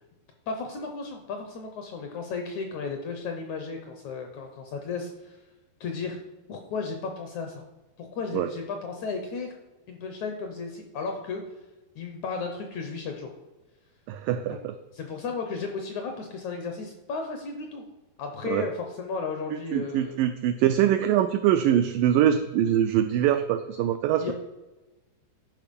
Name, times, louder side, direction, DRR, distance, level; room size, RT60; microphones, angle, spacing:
voice 1, 0.5-5.4 5.8-6.2 6.5-7.6 8.0-9.6 9.9-11.4 12.0-13.3 14.5-14.6 14.9-17.8 18.2-20.2 24.2-24.3, left 4 dB, 70° left, 4 dB, 1.8 m, -34 dB
voice 2, 14.1-14.7 18.4-18.7 19.7-24.3, right 11 dB, 90° right, 8 dB, 1.9 m, -23 dB
11.5 x 5.0 x 5.2 m, 1.1 s
omnidirectional pair, 4.4 m